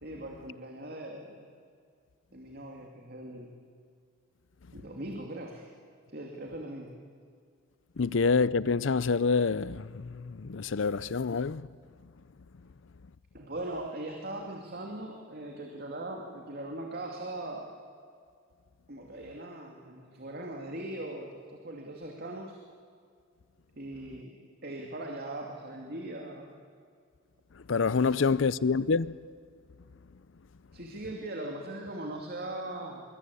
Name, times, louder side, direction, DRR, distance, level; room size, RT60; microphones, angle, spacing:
voice 1, 0.0-1.5 2.3-3.5 4.7-5.6 6.1-6.9 13.3-17.7 18.9-22.6 23.8-24.4 24.6-26.5 28.0-28.4 30.7-33.0, right 1 dB, 50° right, 2.6 m, -40 dB
voice 2, 8.0-11.7 27.7-29.2, left 4 dB, 65° left, 0.6 m, -27 dB
25.5 x 23.5 x 8.4 m
head